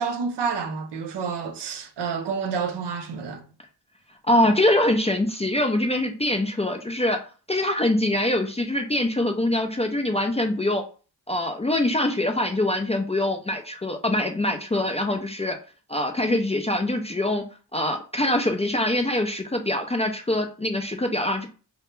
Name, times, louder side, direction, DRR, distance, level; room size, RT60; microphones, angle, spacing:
voice 1, 0.0-3.4, right 5 dB, 75° right, 0.6 m, -29 dB
voice 2, 4.3-7.2 7.5-10.8 11.3-15.6 15.9-17.4 17.7-21.5, left 1 dB, 15° left, 0.3 m, -24 dB
2.2 x 2.0 x 3.0 m
cardioid pair, 50°, 42 cm